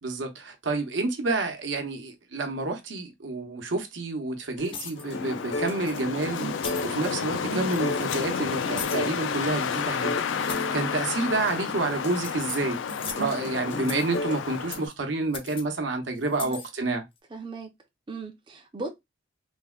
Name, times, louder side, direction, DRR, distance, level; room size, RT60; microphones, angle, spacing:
voice 1, 0.0-12.8 13.1-17.0, right 3 dB, 80° right, 0.8 m, -29 dB
sound 1, 4.6-14.9, left 1 dB, 70° left, 0.8 m, -35 dB
sound 2, 4.6-5.1 5.8-6.0 6.5-7.0 7.6-8.1 8.8-9.1 9.6-9.8 10.4-10.7 11.3-11.7 12.1-13.3 13.8-14.2 14.7-14.9 15.3-15.6 16.3-16.7, left 6 dB, 30° left, 0.4 m, -39 dB
Wind, 5.0-14.9, left 7 dB, 85° left, 0.4 m, -31 dB
voice 2, 17.3-17.7 18.1-18.9, right 3 dB, 25° right, 0.5 m, -37 dB
3.3 x 2.1 x 2.2 m
head